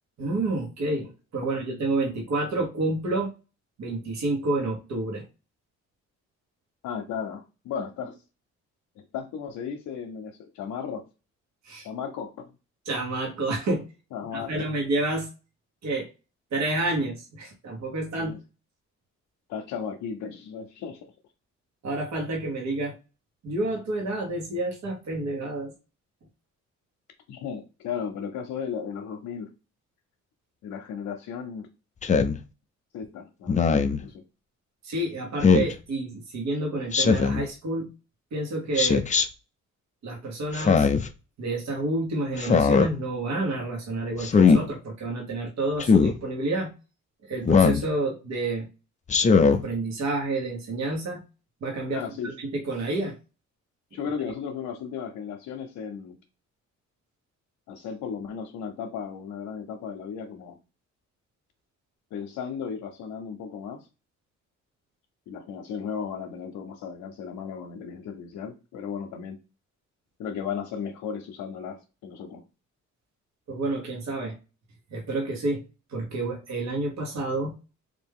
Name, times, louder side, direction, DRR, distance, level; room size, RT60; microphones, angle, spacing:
voice 1, 0.2-3.3 3.8-5.2 11.6-11.9 12.9-13.8 14.3-15.3 15.8-16.1 16.5-18.3 21.8-22.9 23.4-25.7 34.8-37.9 38.3-39.0 40.0-40.9 41.4-46.7 47.2-48.7 49.5-51.2 51.6-53.2 73.5-74.3 74.9-75.6 75.9-77.5, right 2 dB, 65° right, 1 dB, 1.3 m, -29 dB
voice 2, 6.8-8.2 9.0-11.0 11.8-12.5 14.1-14.7 18.2-18.4 19.5-21.1 27.3-29.5 30.6-31.7 32.9-33.6 34.0-34.2 51.9-52.3 53.9-56.2 57.7-60.6 62.1-63.9 65.3-69.4 70.2-72.4, left 7 dB, 85° left, 2 dB, 0.7 m, -35 dB
Speech synthesizer, 32.0-32.4 33.5-34.0 35.4-35.7 36.9-37.4 38.7-39.2 40.5-41.1 42.4-42.9 44.2-44.6 45.8-46.1 47.4-47.8 49.1-49.6, left 5 dB, 25° left, 0.4 m, -19 dB
3.5 x 2.6 x 3.5 m, 0.30 s
cardioid pair, 90°, 30 cm